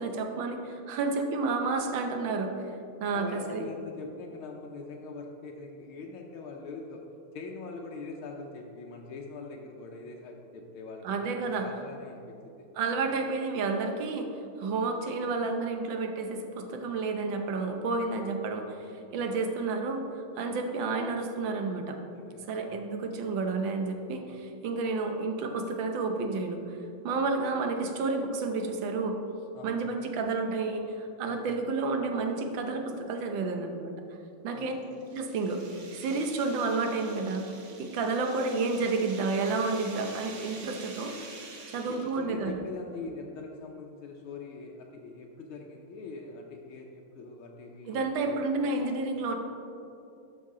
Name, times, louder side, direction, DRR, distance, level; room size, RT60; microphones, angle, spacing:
voice 1, 0.0-2.5 3.0-3.6 11.0-11.7 12.8-14.3 14.6-18.8 19.1-20.0 20.4-22.0 22.5-26.8 27.0-29.2 29.6-33.9 34.4-34.7 35.1-35.6 35.9-37.5 37.8-41.1 41.7-42.5 47.9-49.4, right 3 dB, 70° right, 4 dB, 1.4 m, -30 dB
voice 2, 3.1-7.1 7.3-12.7 22.1-22.8 27.2-27.6 29.5-30.1 31.2-31.6 34.5-35.0 41.9-48.4, left 3 dB, 80° left, 0 dB, 1.5 m, -43 dB
sound 1, 34.5-42.3, right 3 dB, 50° right, 0.9 m, -47 dB
12.0 x 5.6 x 3.7 m, 2.7 s
omnidirectional pair, 2.3 m